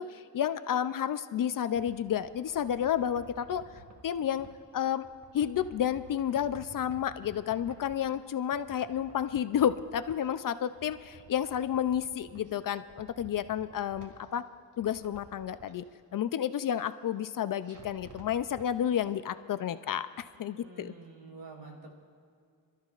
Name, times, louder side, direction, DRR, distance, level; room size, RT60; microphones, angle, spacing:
voice 1, 0.0-3.6 4.0-4.5 4.7-5.1 5.3-14.4 14.8-15.8 16.1-20.9, left 9 dB, 50° left, 12 dB, 0.5 m, -31 dB
sound 1, 1.4-4.5 5.0-8.2 8.5-10.3 10.6-12.5 12.9-14.4 14.7-15.7 17.6-18.7 19.0-19.1, right 2 dB, 45° right, 2.0 m, -53 dB
voice 2, 20.6-21.9, right 3 dB, 65° right, -1 dB, 3.3 m, -47 dB
27.0 x 13.0 x 2.4 m, 2.3 s
cardioid pair, 110°, 44 cm